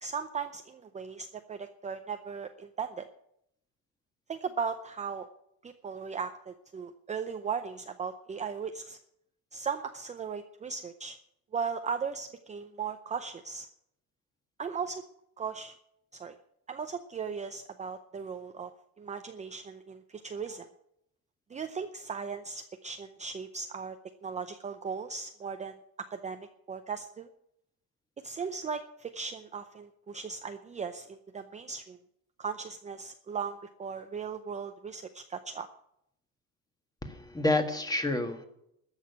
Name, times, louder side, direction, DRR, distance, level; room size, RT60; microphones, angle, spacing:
voice 1, 0.0-3.1 4.3-5.3 5.6-9.0 9.5-11.2 11.5-13.7 14.6-15.0 15.4-15.7 16.1-16.4 16.7-18.7 19.0-20.7 21.5-24.0 24.2-27.3 28.2-32.0 32.4-35.7, right 6 dB, 20° right, 7 dB, 0.6 m, -37 dB
voice 2, 37.0-38.5, left 2 dB, 10° left, 6 dB, 1.6 m, -29 dB
13.5 x 6.5 x 9.6 m, 0.78 s
cardioid pair, 135°, 35 cm